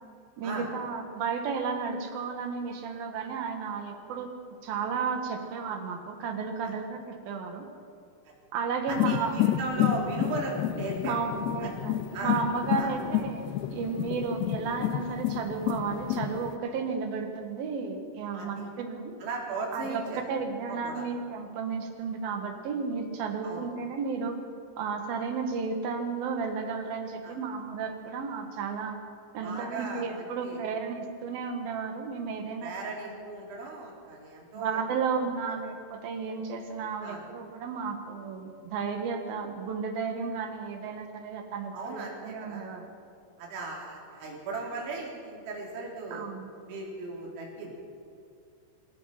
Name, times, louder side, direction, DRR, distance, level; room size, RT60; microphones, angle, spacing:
voice 1, 0.4-4.3 4.6-7.7 8.5-9.4 11.1-13.4 13.7-19.2 19.7-24.4 24.8-29.0 29.3-33.2 34.5-42.9 46.1-46.5, right 5 dB, 60° right, 5 dB, 3.3 m, -33 dB
sound 1, 8.9-16.6, left 12 dB, 80° left, 2.6 m, -30 dB
voice 2, 8.9-11.2 11.6-11.7 12.1-12.3 12.8-13.0 18.3-18.7 19.2-20.2 20.6-21.1 23.4-23.7 27.2-27.4 29.4-30.6 32.6-34.8 35.5-35.6 37.0-37.2 41.7-42.7 43.4-46.3 46.7-47.9, right 3 dB, 90° right, -2 dB, 6.1 m, -37 dB
25.5 x 17.5 x 5.9 m, 2.5 s
omnidirectional pair, 5.2 m